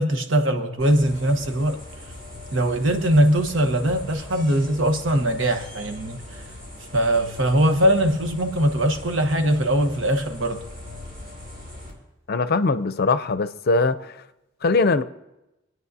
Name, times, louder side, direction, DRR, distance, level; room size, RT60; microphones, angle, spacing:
voice 1, 0.0-1.8 2.5-6.2 6.9-10.6, right 1 dB, 80° right, 1.1 m, -21 dB
sound 1, 0.8-11.9, left 1 dB, 50° right, 4.5 m, -40 dB
voice 2, 12.3-14.2 14.6-15.0, left 3 dB, 55° left, 0.5 m, -21 dB
27.0 x 9.4 x 2.7 m
head